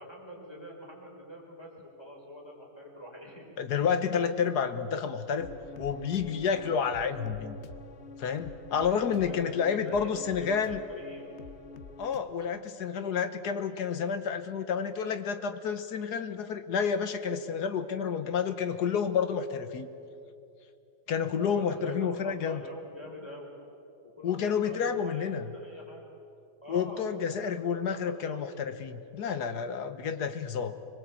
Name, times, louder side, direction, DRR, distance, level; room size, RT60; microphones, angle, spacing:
voice 1, 0.0-3.5 9.2-11.2 21.4-23.5 24.0-26.0 26.6-28.4, equal, 15° left, -1 dB, 5.3 m, -45 dB
voice 2, 3.6-5.5 5.8-7.6 8.2-10.8 12.0-19.9 21.1-22.6 24.2-25.5 26.7-30.8, left 6 dB, 75° left, 10 dB, 1.6 m, -30 dB
sound 1, 5.4-12.2, left 4 dB, 45° left, 1.1 m, -47 dB
25.5 x 21.5 x 8.4 m, 2.7 s
omnidirectional pair, 1.8 m